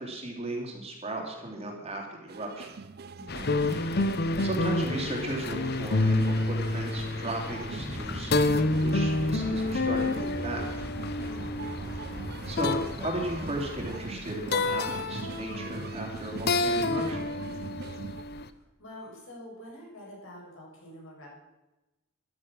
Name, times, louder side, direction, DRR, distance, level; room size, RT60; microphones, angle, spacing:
voice 1, 0.0-2.7 4.4-10.7 12.4-17.2, right 1 dB, 30° right, 1 dB, 3.0 m, -35 dB
sound 1, 2.3-18.2, right 4 dB, 45° right, 0.5 m, -42 dB
voice 2, 3.2-3.8 11.2-11.6 18.2-21.3, equal, 65° left, -3 dB, 6.9 m, -47 dB
sound 2, 3.3-18.5, left 2 dB, 45° left, 0.8 m, -29 dB
sound 3, 7.8-14.0, equal, 10° left, 1.7 m, -40 dB
14.0 x 12.0 x 6.2 m, 1.0 s
head